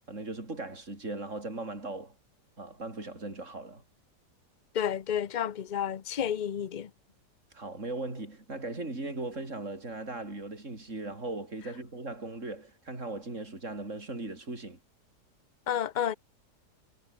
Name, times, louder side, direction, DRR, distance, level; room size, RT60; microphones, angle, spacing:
voice 1, 0.1-2.1 2.6-3.8 7.5-14.8, right 2 dB, 45° right, 6.0 m, -38 dB
voice 2, 4.7-6.9 15.7-16.1, left 9 dB, 40° left, 0.6 m, -30 dB
omnidirectional pair, 1.8 m